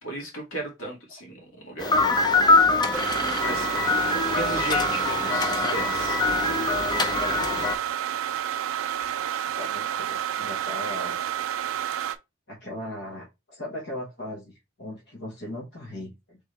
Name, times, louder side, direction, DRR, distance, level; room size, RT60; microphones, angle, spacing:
voice 1, 0.0-2.4 3.4-3.7 4.3-6.2, right 1 dB, 75° left, 2.1 m, -36 dB
sound 1, 1.8-7.8, left 3 dB, 20° left, 0.6 m, -23 dB
sound 2, 2.9-12.2, right 11 dB, 85° right, 0.5 m, -29 dB
voice 2, 9.6-11.1 12.5-14.5 14.8-16.4, left 1 dB, 60° left, 1.3 m, -38 dB
4.0 x 3.6 x 3.2 m
head